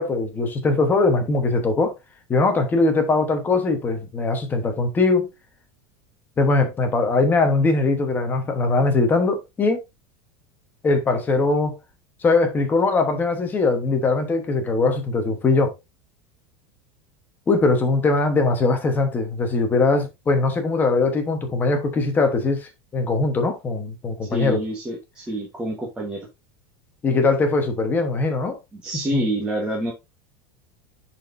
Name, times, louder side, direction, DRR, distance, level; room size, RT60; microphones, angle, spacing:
voice 1, 0.0-1.9 2.3-5.3 6.4-9.8 10.8-11.8 12.2-15.7 17.5-24.6 27.0-28.6 29.1-29.3, left 3 dB, 15° left, 1.1 m, -21 dB
voice 2, 24.3-26.3 28.7-29.9, right 1 dB, 10° right, 1.3 m, -27 dB
10.0 x 4.3 x 2.6 m
supercardioid pair, 175°, 13 cm